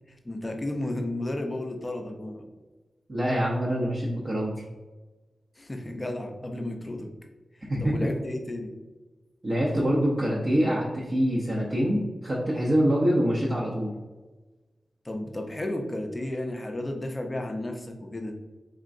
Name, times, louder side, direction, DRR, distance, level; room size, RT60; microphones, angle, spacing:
voice 1, 0.1-2.5 5.6-7.1 7.8-8.7 15.0-18.4, left 1 dB, 20° left, 3 dB, 0.5 m, -33 dB
voice 2, 3.1-4.5 7.7-8.1 9.4-13.9, equal, 40° right, -6 dB, 0.7 m, -25 dB
4.3 x 3.6 x 2.5 m, 1.2 s
wide cardioid pair, 140°, 0 cm